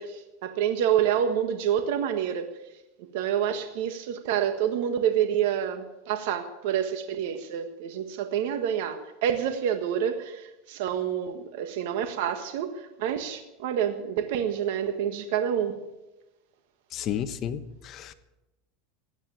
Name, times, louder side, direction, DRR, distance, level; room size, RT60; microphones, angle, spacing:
voice 1, 0.0-2.5 3.1-15.7, right 9 dB, 70° right, 7 dB, 1.5 m, -28 dB
voice 2, 16.9-18.1, left 9 dB, 35° left, 10 dB, 1.1 m, -32 dB
16.0 x 9.5 x 9.1 m, 0.98 s
supercardioid pair, 145°, 0 cm